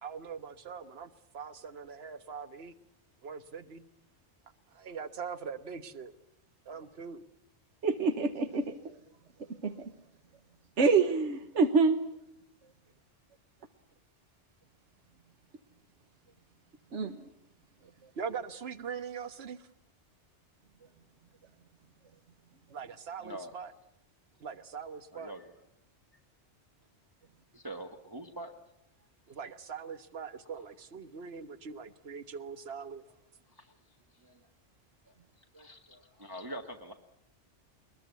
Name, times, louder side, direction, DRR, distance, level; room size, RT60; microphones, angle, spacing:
voice 1, 0.0-2.7 3.2-3.9 4.7-6.1 6.6-7.2 17.8-19.7 22.7-23.7 24.4-25.3 29.3-33.0, right 6 dB, 60° right, 10 dB, 1.4 m, -42 dB
voice 2, 7.8-8.9 9.6-9.9 10.8-12.0 16.9-17.2, right 4 dB, 80° right, 8 dB, 1.5 m, -26 dB
voice 3, 25.1-25.5 27.5-28.5 33.6-33.7 34.2-34.4 35.1-35.2 35.5-36.9, right 1 dB, 20° right, 2 dB, 1.6 m, -44 dB
22.0 x 21.5 x 8.2 m, 0.80 s
omnidirectional pair, 1.2 m